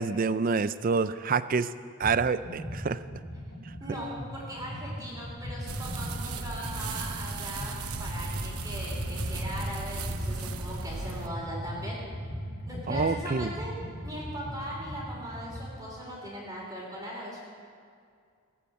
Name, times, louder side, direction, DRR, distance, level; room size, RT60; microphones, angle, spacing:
voice 1, 0.0-1.7 2.0-3.0 12.9-13.5, right 4 dB, 40° right, 14 dB, 0.4 m, -27 dB
sound 1, 2.0-2.2 2.4-15.7, equal, 65° left, 3.7 m, -38 dB
voice 2, 3.8-12.0 12.6-13.7 14.0-17.4, equal, 15° right, -4 dB, 3.5 m, -39 dB
sound 2, 5.7-11.3, right 4 dB, 85° right, 0.9 m, -37 dB
19.0 x 9.0 x 7.4 m, 2.2 s
head